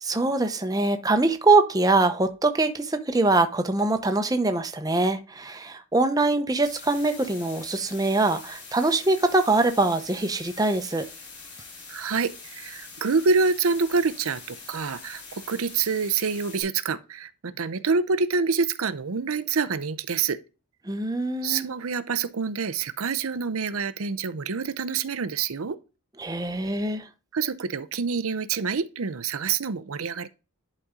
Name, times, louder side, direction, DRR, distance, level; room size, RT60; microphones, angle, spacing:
voice 1, 0.0-11.1 20.9-21.7 26.2-27.0, right 2 dB, 15° right, 0.7 m, -23 dB
sound 1, 6.6-16.6, left 4 dB, 90° left, 3.9 m, -44 dB
voice 2, 11.9-20.4 21.4-25.8 27.3-30.3, right 5 dB, 70° right, 0.6 m, -26 dB
11.0 x 4.2 x 3.7 m
head